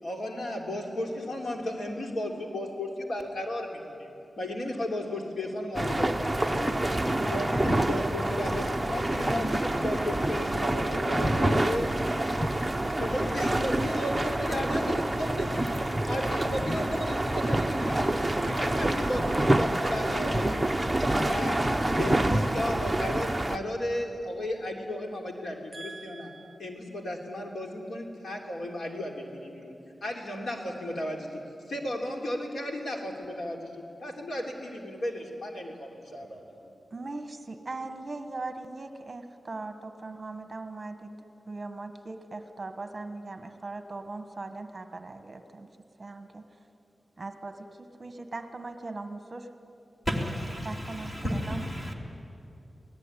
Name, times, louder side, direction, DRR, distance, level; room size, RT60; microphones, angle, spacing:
voice 1, 0.0-6.7 7.3-11.9 12.9-15.7 16.0-20.8 21.2-21.6 22.0-26.3 26.6-29.7 30.0-31.4 31.7-36.4, left 1 dB, 75° left, 1 dB, 3.4 m, -34 dB
sound 1, 5.7-23.6, right 1 dB, 10° right, 0.8 m, -27 dB
voice 2, 25.7-26.6 36.9-41.1 41.5-45.7 46.0-46.6 47.2-49.5 50.6-51.6, right 3 dB, 30° right, 7 dB, 1.3 m, -40 dB
voice 3, 50.1-51.9, equal, 20° left, 0 dB, 3.1 m, -32 dB
26.0 x 18.5 x 9.9 m, 2.8 s
wide cardioid pair, 155°, 0 cm